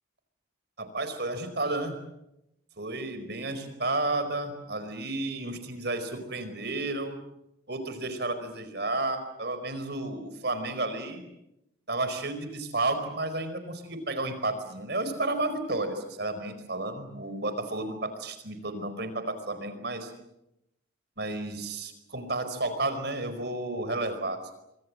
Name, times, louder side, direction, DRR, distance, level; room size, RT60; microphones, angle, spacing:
voice 1, 0.8-2.0 2.8-7.2 7.7-11.2 11.9-20.1 21.2-24.4, right 2 dB, 55° right, 10 dB, 4.8 m, -32 dB
25.0 x 25.0 x 7.7 m, 0.85 s
head